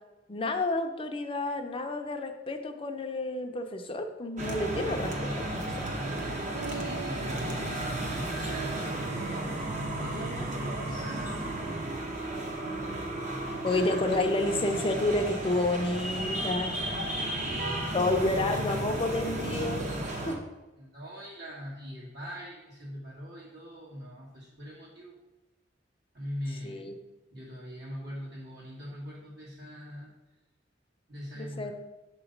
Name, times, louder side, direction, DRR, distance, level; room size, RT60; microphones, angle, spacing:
voice 1, 0.3-5.9 13.6-16.7 17.9-20.4 26.6-26.9 31.4-31.7, left 2 dB, 30° left, 6 dB, 0.5 m, -30 dB
sound 1, 4.4-20.4, right 1 dB, 45° right, 0.9 m, -33 dB
sound 2, 6.0-10.4, right 7 dB, 85° right, 0.3 m, -44 dB
voice 2, 6.6-12.2 13.4-13.7 17.0-18.1 20.8-25.2 26.1-27.0 27.3-30.1 31.1-31.7, equal, 65° right, -8 dB, 1.5 m, -42 dB
6.6 x 3.0 x 5.1 m, 1.0 s
head